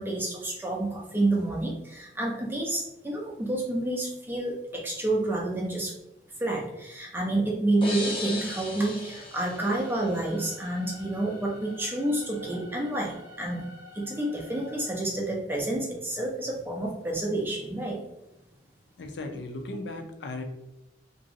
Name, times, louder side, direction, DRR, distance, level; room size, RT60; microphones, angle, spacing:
voice 1, 0.0-5.9 6.4-13.6 13.9-18.0, right 2 dB, 10° right, -2 dB, 0.5 m, -29 dB
sound 1, 7.8-10.6, left 2 dB, 30° left, 0.7 m, -37 dB
sound 2, 9.7-15.0, left 2 dB, 85° right, 0.5 m, -49 dB
voice 2, 19.0-20.4, left 2 dB, 70° left, 5 dB, 0.5 m, -36 dB
2.9 x 2.6 x 2.7 m, 0.91 s
head